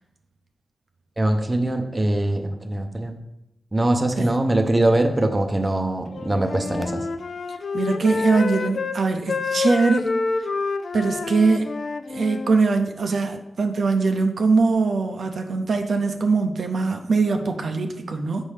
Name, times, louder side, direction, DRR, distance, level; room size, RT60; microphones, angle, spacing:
voice 1, 1.2-3.2 3.7-7.0, right 1 dB, 20° right, 5 dB, 0.6 m, -22 dB
Wind instrument woodwind instrument, 6.1-9.0 9.3-12.6, left 4 dB, 60° left, 0.3 m, -28 dB
voice 2, 7.7-10.1 10.9-11.7 12.1-18.5, right 4 dB, 65° right, 4 dB, 0.5 m, -22 dB
7.2 x 5.2 x 3.3 m, 0.85 s
wide cardioid pair, 135°, 0 cm